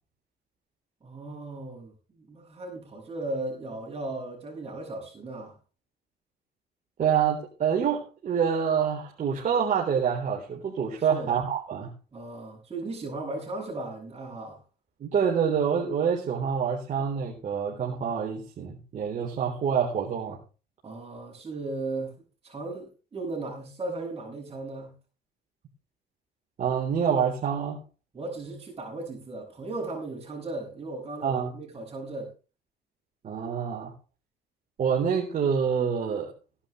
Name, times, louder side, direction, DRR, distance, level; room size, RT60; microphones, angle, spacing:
voice 1, 1.0-5.5 11.1-11.4 12.1-14.6 20.8-22.1 22.4-24.9 28.1-32.3, right 2 dB, 30° right, -6 dB, 7.6 m, -36 dB
voice 2, 7.0-11.9 15.0-20.4 26.6-27.8 31.2-31.5 33.2-33.9 34.8-36.3, right 7 dB, 45° right, -1 dB, 4.1 m, -26 dB
18.5 x 11.0 x 3.4 m, 0.35 s
cardioid pair, 110°, 17 cm